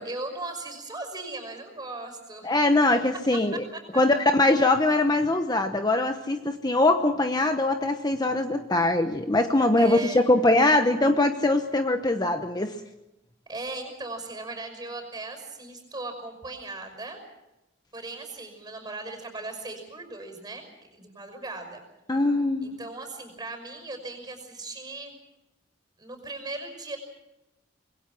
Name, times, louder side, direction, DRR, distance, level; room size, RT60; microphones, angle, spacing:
voice 1, 0.0-2.5 3.7-4.0 9.8-10.3 13.5-17.2 17.9-21.8 22.6-25.1 26.0-27.0, right 2 dB, 20° right, 6 dB, 5.8 m, -38 dB
voice 2, 2.4-3.6 3.9-12.7 22.1-22.7, left 2 dB, 20° left, 6 dB, 1.0 m, -22 dB
26.0 x 21.5 x 6.1 m, 0.94 s
head